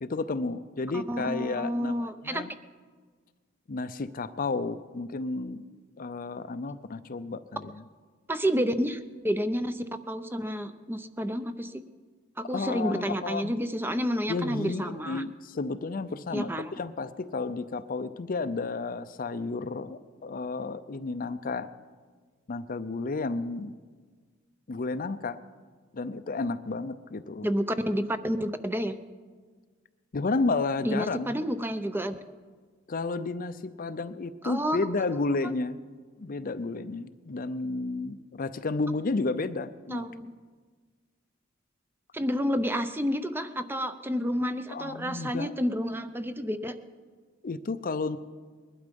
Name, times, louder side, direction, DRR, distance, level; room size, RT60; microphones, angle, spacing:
voice 1, 0.0-2.5 3.7-5.7 6.0-7.8 12.5-13.6 14.3-21.7 22.5-23.7 24.7-25.4 25.9-27.5 30.1-31.5 32.9-35.8 36.2-40.1 44.7-45.5 47.4-48.2, left 3 dB, 45° left, 12 dB, 0.5 m, -32 dB
voice 2, 0.9-2.4 8.3-11.8 12.4-15.2 16.3-16.7 27.4-28.9 30.8-32.2 34.4-34.8 39.9-40.3 42.1-46.8, equal, 10° right, 10 dB, 0.6 m, -30 dB
21.0 x 12.0 x 5.3 m, 1.5 s
head